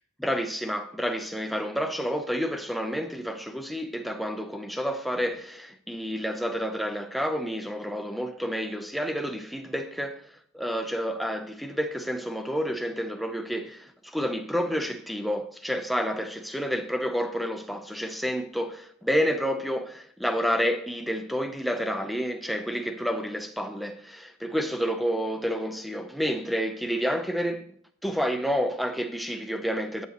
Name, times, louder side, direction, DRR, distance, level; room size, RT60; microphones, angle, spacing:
voice 1, 0.2-27.7 28.0-30.1, equal, ahead, 0.7 m, -29 dB
11.0 x 8.0 x 3.0 m
head